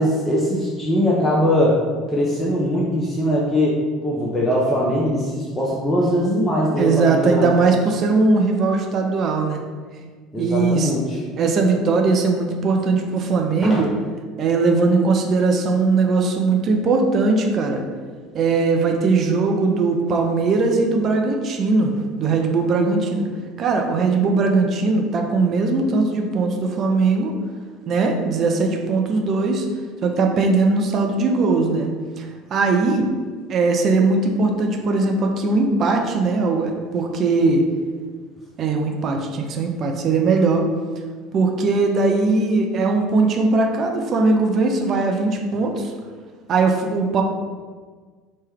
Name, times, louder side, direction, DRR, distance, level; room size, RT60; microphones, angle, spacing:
voice 1, 0.0-1.8 2.1-7.5 10.3-11.2 13.6-13.8, equal, 15° left, -5 dB, 0.6 m, -21 dB
voice 2, 6.8-9.6 10.4-10.9 11.4-13.9 14.4-17.8 18.3-21.9 22.2-23.3 23.6-27.4 27.9-29.7 30.0-33.1 33.5-37.7 38.6-40.6 41.3-45.9 46.5-47.2, right 3 dB, 45° right, 3 dB, 0.4 m, -19 dB
3.0 x 2.1 x 3.4 m, 1.5 s
figure-of-eight pair, 65°, 0 cm